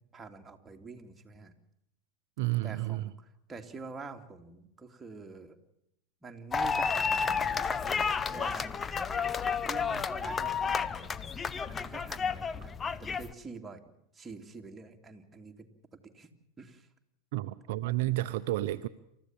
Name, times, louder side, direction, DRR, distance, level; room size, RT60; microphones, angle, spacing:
voice 1, 0.1-1.5 2.6-5.6 6.2-8.0 8.3-8.9 9.6-11.1 11.6-12.7 13.0-13.8 14.1-15.7 16.1-16.9, right 4 dB, 15° right, 3 dB, 2.7 m, -46 dB
voice 2, 2.4-3.1 17.3-18.9, right 17 dB, 60° right, 10 dB, 0.8 m, -31 dB
sound 1, 6.5-13.3, left 5 dB, 20° left, 0.8 m, -31 dB
28.5 x 14.5 x 7.4 m, 0.78 s
hypercardioid pair, 95°, 0 cm